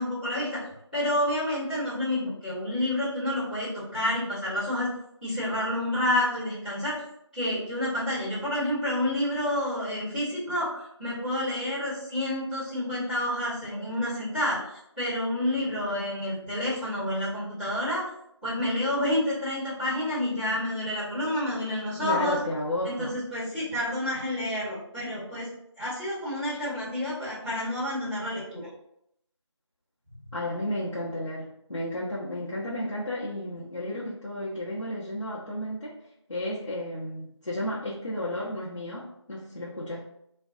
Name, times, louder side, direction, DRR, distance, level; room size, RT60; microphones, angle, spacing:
voice 1, 0.0-4.9 5.2-7.0 7.3-18.0 18.4-22.4 22.8-25.5 25.8-28.6, left 1 dB, 15° left, -17 dB, 1.1 m, -29 dB
voice 2, 22.0-23.1 30.3-35.9 36.3-40.0, left 1 dB, 75° left, -8 dB, 0.8 m, -33 dB
2.5 x 2.2 x 2.6 m, 0.76 s
figure-of-eight pair, 175°, 16 cm